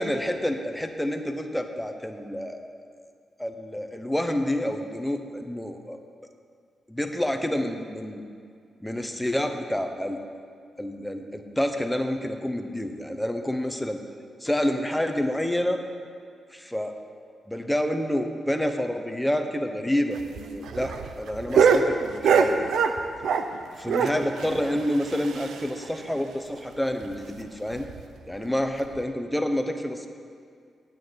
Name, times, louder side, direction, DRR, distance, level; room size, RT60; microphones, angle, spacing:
voice 1, 0.0-2.8 3.4-6.0 6.9-8.2 8.8-10.2 10.8-14.0 14.4-15.8 16.5-16.9 17.5-22.6 23.8-27.9 28.3-30.1, left 1 dB, 5° left, 5 dB, 0.9 m, -28 dB
sound 1, 20.1-23.6 23.9-25.9 26.2-26.3 26.5-26.6 27.0-27.1 27.7-28.0 28.8-29.0, right 6 dB, 90° right, 0.7 m, -24 dB
9.1 x 9.0 x 7.9 m, 2.2 s
wide cardioid pair, 125°, 0 cm